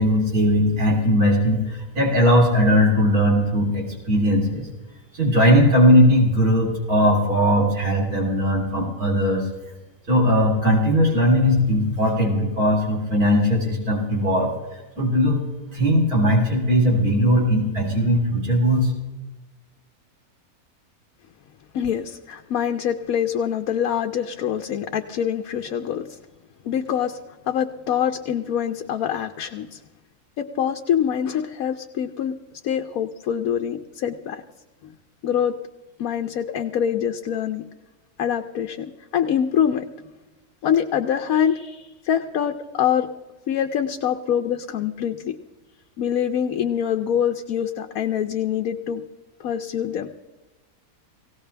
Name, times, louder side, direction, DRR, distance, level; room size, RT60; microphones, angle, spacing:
voice 1, 0.0-4.7 5.1-9.5 10.1-15.4 15.7-18.9, equal, 75° right, -2 dB, 4.0 m, -19 dB
voice 2, 21.7-26.2 26.6-27.2 27.5-29.8 30.4-32.3 32.6-34.4 35.2-35.6 36.0-37.6 38.2-39.9 40.6-43.1 43.5-45.4 46.0-49.0 49.4-50.1, left 9 dB, 70° left, 4 dB, 1.1 m, -24 dB
18.5 x 17.5 x 3.4 m, 1.1 s
omnidirectional pair, 1.6 m